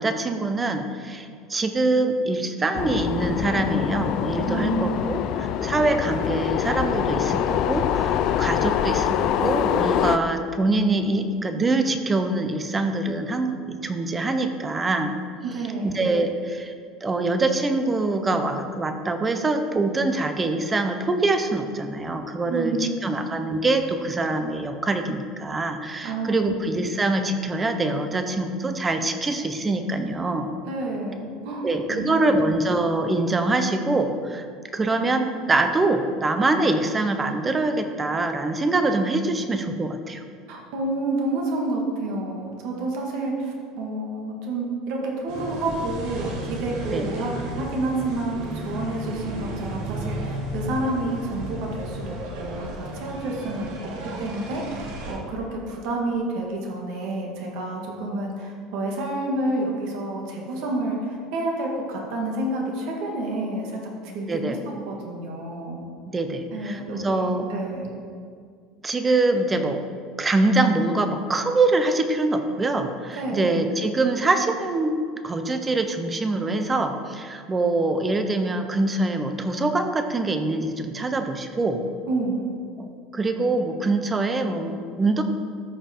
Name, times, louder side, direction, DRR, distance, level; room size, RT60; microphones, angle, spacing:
voice 1, 0.0-15.2 15.8-16.7 17.0-30.5 31.6-34.5 34.7-40.2 46.9-47.1 64.3-64.6 66.1-67.5 68.8-69.8 70.2-75.0 75.2-81.8 82.8-82.9 83.1-85.2, right 2 dB, 15° right, 7 dB, 0.5 m, -24 dB
sound 1, 2.7-10.2, left 10 dB, 40° left, 0.3 m, -24 dB
voice 2, 4.5-5.1 15.4-16.0 22.5-23.2 26.0-26.5 30.6-32.3 40.5-53.9 54.2-65.8 66.5-67.9 73.1-73.5 82.1-82.5, right 2 dB, 55° right, -1 dB, 1.7 m, -29 dB
sound 2, 45.3-55.2, right 1 dB, 85° right, 1.7 m, -34 dB
13.5 x 5.3 x 4.4 m, 2.1 s
cardioid pair, 170°, 0 cm